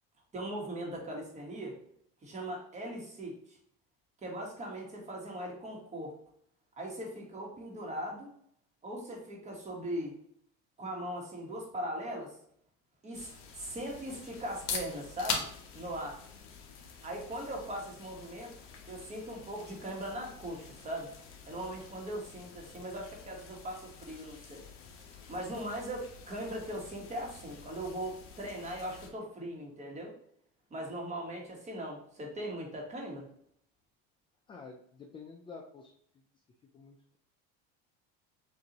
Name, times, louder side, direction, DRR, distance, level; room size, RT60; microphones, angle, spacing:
voice 1, 0.3-1.8 2.2-3.6 4.2-6.1 6.8-8.3 8.8-10.2 10.8-12.4 13.0-15.5 15.7-16.2 17.0-18.5 18.9-21.1 21.5-24.7 25.3-30.1 30.7-33.2, right 1 dB, 20° right, 0 dB, 1.3 m, -39 dB
sound 1, 13.1-29.1, left 5 dB, 45° left, 1.0 m, -52 dB
sound 2, 14.4-30.0, left 5 dB, 60° left, 1.3 m, -45 dB
voice 2, 34.5-37.2, left 4 dB, 15° left, 1 dB, 0.4 m, -50 dB
6.7 x 2.6 x 2.9 m, 0.67 s
cardioid pair, 140°, 31 cm